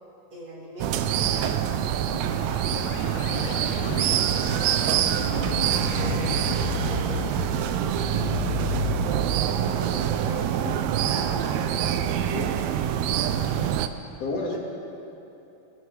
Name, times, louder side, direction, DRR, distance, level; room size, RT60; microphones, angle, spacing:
voice 1, 0.3-2.6 3.3-5.1 5.6-10.4 11.0-12.5 14.3-14.6, right 1 dB, 45° right, -6 dB, 4.4 m, -40 dB
sound 1, 0.8-13.9, right 10 dB, 80° right, 1.7 m, -25 dB
sound 2, 2.1-9.0, left 7 dB, 75° left, 2.1 m, -33 dB
voice 2, 10.6-11.0 12.3-12.8 14.2-14.5, left 3 dB, 60° left, -2 dB, 2.8 m, -32 dB
21.0 x 13.0 x 3.3 m, 2.8 s
omnidirectional pair, 3.4 m